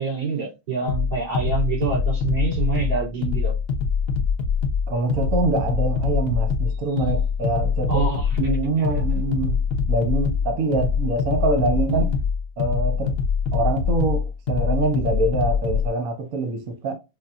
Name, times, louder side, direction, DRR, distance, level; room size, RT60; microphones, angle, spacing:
voice 1, 0.0-3.5 7.9-8.4 8.8-9.2 11.9-12.2, right 5 dB, 80° right, 3.6 m, -27 dB
sound 1, 0.9-15.9, left 6 dB, 60° left, 0.6 m, -23 dB
voice 2, 4.9-8.0 8.4-9.6 9.9-12.0 12.6-13.1 13.5-16.9, right 3 dB, 55° right, 1.1 m, -24 dB
5.7 x 2.6 x 2.3 m
omnidirectional pair, 2.2 m